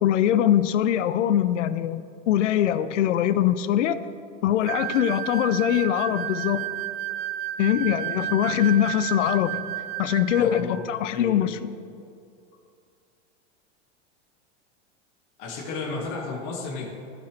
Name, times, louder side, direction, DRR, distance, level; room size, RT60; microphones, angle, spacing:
voice 1, 0.0-4.0 4.4-6.6 7.6-9.7 10.0-11.8, left 10 dB, 80° left, 13 dB, 0.6 m, -22 dB
sound 1, 4.6-10.7, right 13 dB, 30° right, 0.4 m, -32 dB
voice 2, 10.4-10.8 11.1-11.5 15.4-16.9, left 3 dB, 55° left, -2 dB, 2.0 m, -33 dB
15.5 x 5.8 x 3.3 m, 2.5 s
hypercardioid pair, 110°, 36 cm